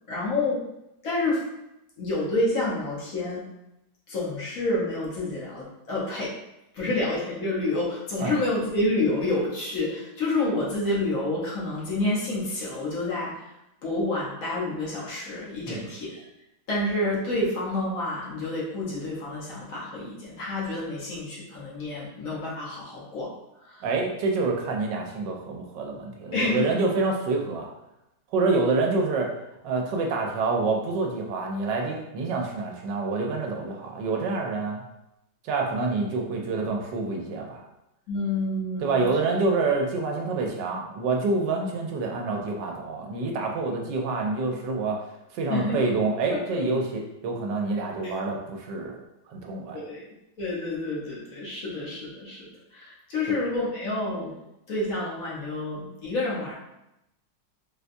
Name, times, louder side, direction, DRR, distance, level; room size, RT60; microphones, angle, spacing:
voice 1, 0.1-0.6 1.0-1.4 2.0-3.4 4.1-6.3 6.7-13.5 13.8-16.2 16.7-23.3 23.6-23.8 26.3-26.7 38.1-39.0 45.5-45.9 46.6-46.7 48.0-48.2 49.7-50.0 50.4-54.3 54.7-56.5, left 2 dB, 55° left, -6 dB, 1.2 m, -28 dB
voice 2, 23.8-27.7 28.3-29.3 29.6-34.8 35.4-37.6 38.8-45.0 45.3-49.0 49.3-49.8, right 3 dB, 80° right, 1 dB, 1.2 m, -27 dB
4.0 x 2.2 x 2.5 m, 0.88 s
omnidirectional pair, 1.9 m